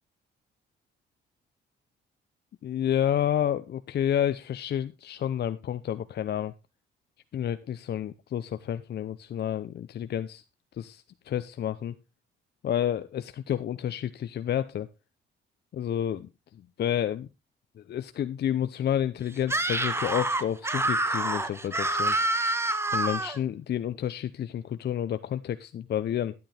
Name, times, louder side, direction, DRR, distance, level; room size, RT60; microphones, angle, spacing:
voice 1, 2.6-6.5 7.3-10.4 10.7-12.0 12.6-14.9 15.7-16.3 16.8-17.3 17.8-22.2 22.9-26.3, left 10 dB, 55° left, 11 dB, 0.7 m, -30 dB
Screaming, 19.4-23.4, right 2 dB, 10° right, 1.4 m, -27 dB
11.5 x 10.5 x 3.4 m, 0.26 s
cardioid pair, 90°, 20 cm